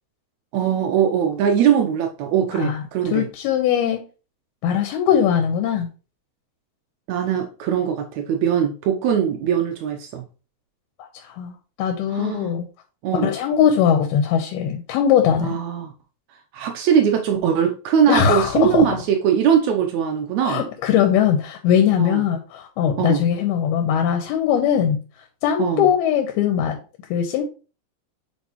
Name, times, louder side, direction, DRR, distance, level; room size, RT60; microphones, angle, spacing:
voice 1, 0.5-3.3 7.1-10.2 12.1-12.6 13.0-13.3 15.4-15.9 16.5-20.6 22.0-22.2 23.0-23.2 25.6-25.9, right 8 dB, 85° right, 1.6 m, -21 dB
voice 2, 3.1-4.1 4.6-5.9 11.1-12.7 13.1-15.6 18.1-18.9 20.4-25.0 25.4-26.8 27.1-27.4, left 8 dB, 90° left, 2.9 m, -20 dB
9.5 x 4.5 x 3.0 m
omnidirectional pair, 4.3 m